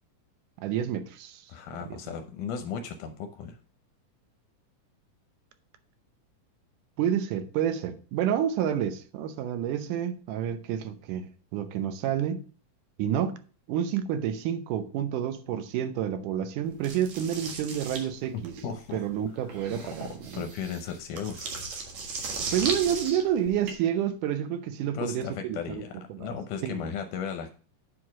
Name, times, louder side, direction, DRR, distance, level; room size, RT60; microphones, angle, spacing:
voice 1, 0.6-1.5 1.8-2.0 7.0-12.4 13.0-13.4 13.7-18.6 18.9-20.5 22.5-25.8 26.1-26.3 26.6-26.9, right 9 dB, 80° right, 2.3 m, -29 dB
voice 2, 1.5-3.6 18.3-19.0 19.8-21.5 24.9-27.5, left 7 dB, 80° left, 2.2 m, -36 dB
sound 1, 16.8-23.7, right 4 dB, 65° right, 2.8 m, -36 dB
8.4 x 4.8 x 6.0 m
omnidirectional pair, 3.7 m